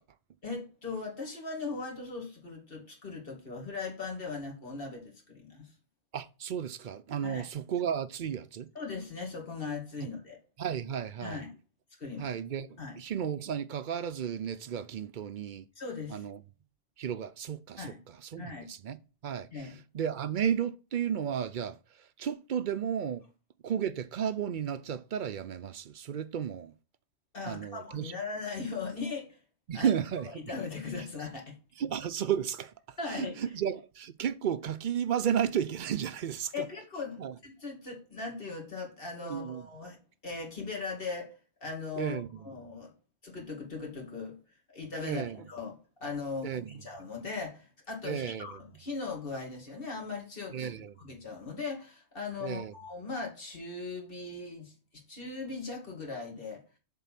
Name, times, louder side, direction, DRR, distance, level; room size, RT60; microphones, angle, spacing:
voice 1, 0.4-5.7 7.2-7.4 8.7-10.4 11.2-11.5 12.0-12.3 12.8-13.0 15.8-16.2 17.8-18.0 18.4-18.7 19.5-19.8 27.3-29.4 29.7-29.9 30.3-31.6 33.0-33.4 36.5-40.0 40.2-41.3 41.6-42.9 43.2-44.4 44.7-56.6, left 4 dB, 55° left, 2.6 m, -39 dB
voice 2, 6.1-8.7 10.6-11.4 12.2-15.6 16.1-16.4 17.0-23.2 23.6-26.7 27.5-28.1 29.7-30.4 31.8-36.7 37.2-37.3 39.2-39.7 42.0-42.5 45.0-45.4 46.4-46.8 48.0-48.6 50.5-50.9 52.4-52.7, right 8 dB, 55° right, 0.6 m, -33 dB
7.2 x 4.1 x 5.8 m
omnidirectional pair, 1.1 m